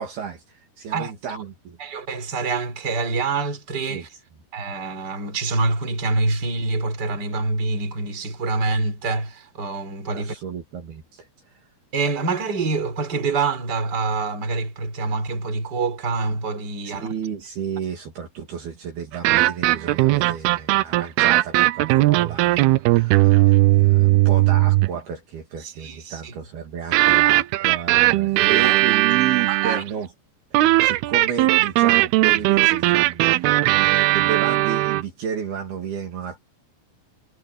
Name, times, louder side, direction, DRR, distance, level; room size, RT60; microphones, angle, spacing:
voice 1, 0.0-1.8 3.9-4.1 10.1-11.3 16.9-30.1 30.8-36.4, right 7 dB, 60° right, 4.3 m, -32 dB
voice 2, 1.8-4.1 4.5-10.4 11.9-17.1 25.6-26.3 28.2-28.8 29.5-29.8, right 3 dB, 25° right, 4.4 m, -26 dB
sound 1, 19.1-25.0 26.9-29.9 30.5-35.0, right 18 dB, 90° right, 2.3 m, -18 dB
omnidirectional pair, 5.3 m